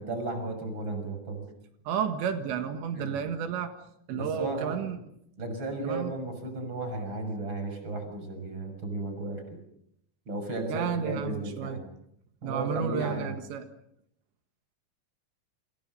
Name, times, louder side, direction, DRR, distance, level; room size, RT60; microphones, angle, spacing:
voice 1, 0.0-1.5 2.9-3.2 4.1-4.8 5.4-9.4 10.3-11.8 12.4-13.3, right 2 dB, 25° right, 6 dB, 6.9 m, -34 dB
voice 2, 1.9-3.7 4.1-5.0 5.8-6.1 10.7-11.8 12.4-13.7, right 7 dB, 90° right, 7 dB, 4.0 m, -32 dB
29.0 x 26.5 x 5.6 m, 0.74 s
omnidirectional pair, 4.9 m